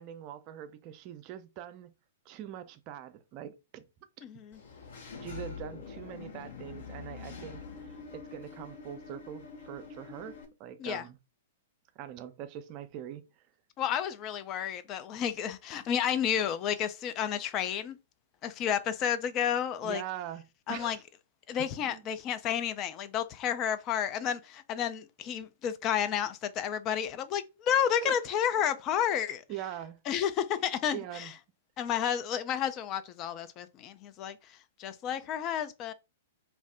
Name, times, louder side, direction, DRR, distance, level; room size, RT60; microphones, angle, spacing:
voice 1, 0.0-1.9 2.3-3.9 5.2-11.2 12.0-13.3 19.8-21.0 21.6-22.0 28.0-28.2 29.5-30.0 30.9-31.3, right 11 dB, 40° right, 0.4 m, -43 dB
voice 2, 4.2-4.6 10.8-11.0 13.8-18.0 18.4-20.0 20.7-21.0 21.5-29.4 30.1-31.3 31.8-35.9, left 9 dB, 35° left, 0.3 m, -31 dB
Engine / Mechanisms, 4.5-10.4, left 5 dB, 60° left, 0.7 m, -45 dB
2.4 x 2.0 x 3.4 m
figure-of-eight pair, 110°, 0 cm